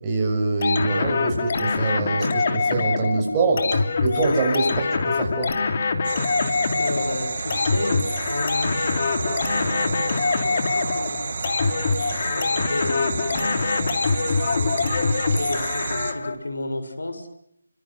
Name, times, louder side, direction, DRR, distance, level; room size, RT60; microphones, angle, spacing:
voice 1, 0.0-5.5, right 3 dB, 15° right, -1 dB, 6.7 m, -24 dB
sound 1, 0.6-16.3, left 4 dB, 40° left, 3.0 m, -24 dB
sound 2, 6.0-16.1, right 4 dB, 50° right, 2.5 m, -31 dB
voice 2, 6.8-8.0 8.3-8.9 9.2-11.4 12.2-17.3, left 2 dB, 90° left, 9 dB, 7.2 m, -32 dB
29.0 x 25.0 x 6.6 m, 0.74 s
figure-of-eight pair, 170°, 0 cm